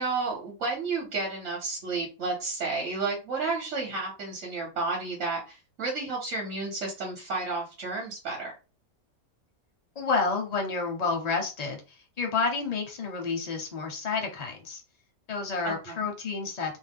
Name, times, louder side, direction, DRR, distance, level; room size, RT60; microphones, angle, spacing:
voice 1, 0.0-8.5 15.6-16.0, right 3 dB, 55° right, -1 dB, 1.1 m, -31 dB
voice 2, 10.0-11.8 12.2-14.8 15.3-16.8, left 4 dB, 45° left, 2 dB, 0.5 m, -29 dB
2.6 x 2.1 x 3.5 m, 0.32 s
omnidirectional pair, 1.5 m